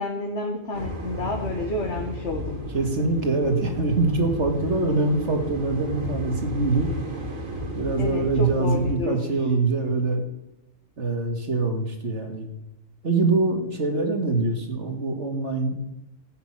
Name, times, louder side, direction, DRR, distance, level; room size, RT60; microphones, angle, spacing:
voice 1, 0.0-2.6 3.0-3.1 8.0-9.3, left 2 dB, 60° left, 1 dB, 1.9 m, -30 dB
sound 1, 0.7-8.9, right 1 dB, 80° right, 2.5 m, -33 dB
voice 2, 2.7-6.9 7.7-10.2 11.0-12.5 13.0-15.8, right 3 dB, 60° right, 4 dB, 2.2 m, -24 dB
15.0 x 6.1 x 8.7 m, 0.89 s
omnidirectional pair, 1.3 m